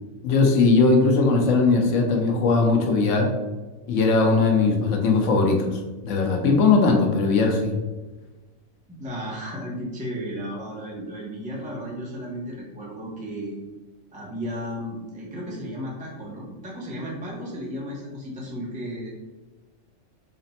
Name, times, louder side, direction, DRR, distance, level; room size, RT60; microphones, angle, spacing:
voice 1, 0.2-3.3 3.9-7.7, left 3 dB, 70° left, 3 dB, 0.9 m, -19 dB
voice 2, 8.9-13.5 14.1-19.1, equal, 10° right, -4 dB, 0.4 m, -34 dB
4.1 x 2.0 x 4.1 m, 1.2 s
omnidirectional pair, 1.4 m